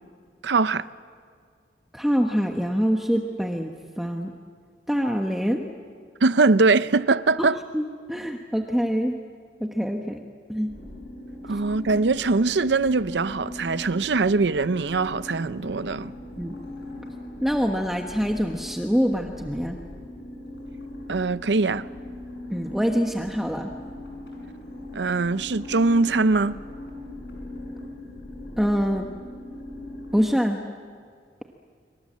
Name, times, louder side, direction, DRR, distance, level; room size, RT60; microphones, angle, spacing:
voice 1, 0.4-0.9 6.2-7.6 11.4-16.1 21.1-21.9 24.9-26.6, right 3 dB, 85° right, 0.7 m, -22 dB
voice 2, 1.9-4.3 4.9-5.6 7.4-7.5 7.7-9.2 9.6-10.2 10.5-10.7 16.4-16.5 17.4-19.8 22.5-23.7 28.6-29.1 30.1-30.6, equal, ahead, 1.1 m, -25 dB
sound 1, 10.7-30.2, left 1 dB, 85° left, 7.9 m, -39 dB
26.5 x 25.0 x 7.5 m
head